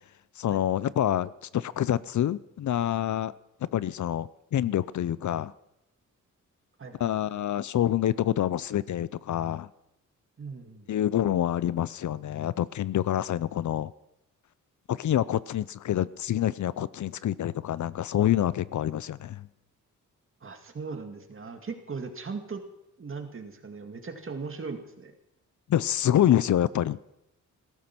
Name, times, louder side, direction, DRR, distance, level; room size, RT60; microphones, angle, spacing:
voice 1, 0.4-3.3 3.7-5.5 7.0-9.7 10.9-13.9 14.9-19.5 25.7-27.0, left 11 dB, 65° left, 19 dB, 0.6 m, -27 dB
voice 2, 6.8-7.2 10.4-10.9 20.4-22.6 23.0-25.1, right 4 dB, 40° right, 5 dB, 2.2 m, -38 dB
16.0 x 14.0 x 6.0 m, 0.86 s
wide cardioid pair, 110°, 32 cm